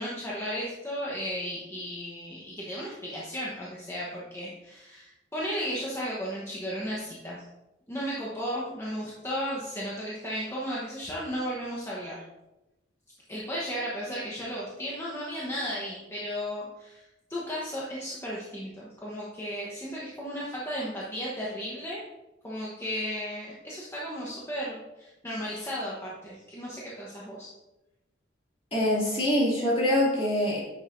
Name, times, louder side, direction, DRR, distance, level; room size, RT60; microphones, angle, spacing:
voice 1, 0.0-7.4 7.9-12.2 13.3-17.0 17.3-22.0 22.4-27.5, equal, 15° left, -6 dB, 1.1 m, -35 dB
voice 2, 28.7-30.6, left 1 dB, 30° left, -6 dB, 2.5 m, -24 dB
9.2 x 6.4 x 2.6 m, 0.99 s
head